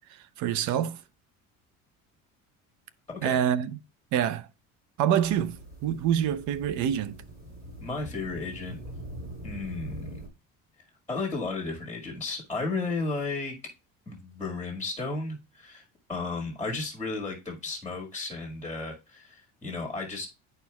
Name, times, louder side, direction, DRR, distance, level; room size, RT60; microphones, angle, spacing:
voice 1, 0.1-1.0 3.2-3.7 4.1-4.5 5.0-7.2, right 9 dB, 65° right, 0.7 m, -26 dB
sound 1, 5.2-10.3, equal, 30° right, 3.9 m, -42 dB
voice 2, 7.8-8.8 9.4-10.0 11.1-13.5 14.1-20.3, left 3 dB, 10° left, 1.8 m, -34 dB
10.5 x 4.5 x 2.3 m
cardioid pair, 130°, 31 cm